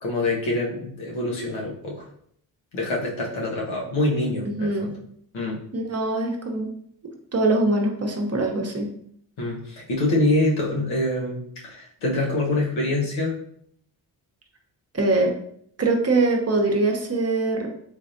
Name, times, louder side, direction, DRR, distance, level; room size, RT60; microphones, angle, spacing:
voice 1, 0.0-2.0 2.7-4.9 5.3-5.6 9.4-13.4, left 2 dB, 85° left, -3 dB, 1.2 m, -25 dB
voice 2, 4.4-4.9 5.7-6.7 7.0-8.9 14.9-15.3 15.8-17.7, right 2 dB, 30° right, 2 dB, 0.8 m, -23 dB
3.6 x 3.1 x 2.6 m, 0.65 s
cardioid pair, 55°, 47 cm